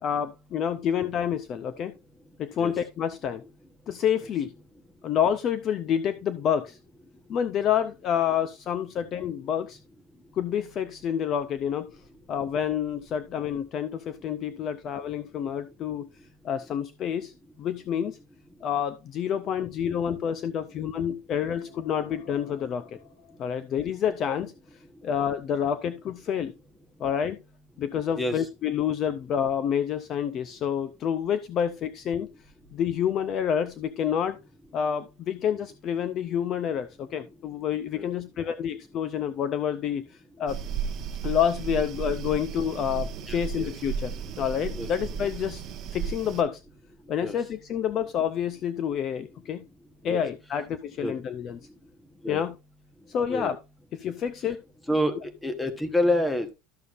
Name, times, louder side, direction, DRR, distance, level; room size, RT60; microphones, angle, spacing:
voice 1, 0.0-1.9 2.4-3.4 3.9-4.5 5.0-6.8 7.3-9.8 10.3-11.9 12.3-16.1 16.4-17.3 17.6-18.2 18.6-23.0 23.4-24.5 25.0-26.5 27.0-27.4 27.8-32.3 32.7-34.4 34.7-40.0 40.4-40.6 41.2-45.6 45.9-46.6 47.1-49.6 50.0-51.6 52.3-52.5 53.1-53.6 53.9-54.6, left 8 dB, 30° left, 12 dB, 0.5 m, -28 dB
sound 1, 21.3-24.0, left 5 dB, 80° left, 2.7 m, -52 dB
voice 2, 28.2-28.5 37.9-38.0 43.3-43.7 44.8-44.9 47.2-47.3 50.0-50.2 51.0-51.1 52.2-52.4 53.3-53.5 54.9-55.1 55.4-56.5, left 1 dB, 5° left, 7 dB, 1.1 m, -27 dB
sound 2, 40.5-46.4, right 7 dB, 35° right, 0.9 m, -34 dB
12.5 x 6.8 x 2.5 m, 0.26 s
cardioid pair, 170°, 0 cm